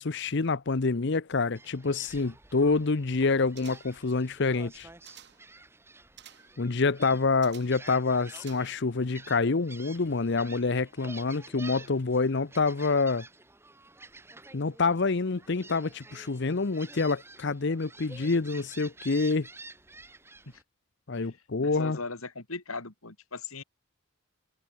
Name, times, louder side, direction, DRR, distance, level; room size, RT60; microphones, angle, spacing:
voice 1, 0.0-4.9 6.6-13.2 14.5-19.5 21.1-22.0, left 4 dB, 55° left, 0.7 m, -27 dB
Gull seagull, 1.6-20.6, right 3 dB, 10° right, 1.5 m, -50 dB
sound 1, 3.6-4.1 4.7-5.5 6.2-6.6 7.4-7.9 8.3-9.0 9.3-9.4, right 11 dB, 50° right, 3.2 m, -53 dB
voice 2, 21.6-23.6, left 3 dB, 80° left, 3.4 m, -38 dB
head